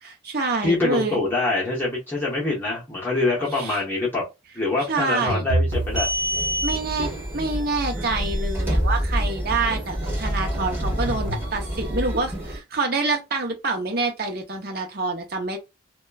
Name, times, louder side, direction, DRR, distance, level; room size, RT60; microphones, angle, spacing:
voice 1, 0.0-1.3 3.5-3.8 4.9-5.5 6.6-15.6, right 3 dB, 50° right, 0.7 m, -27 dB
voice 2, 0.6-4.2 4.5-6.1, left 2 dB, 10° left, 0.8 m, -24 dB
sound 1, 5.3-6.2 10.6-11.5, right 1 dB, 65° right, 1.0 m, -26 dB
sound 2, 5.7-12.6, equal, 10° right, 1.2 m, -27 dB
2.9 x 2.2 x 2.2 m
head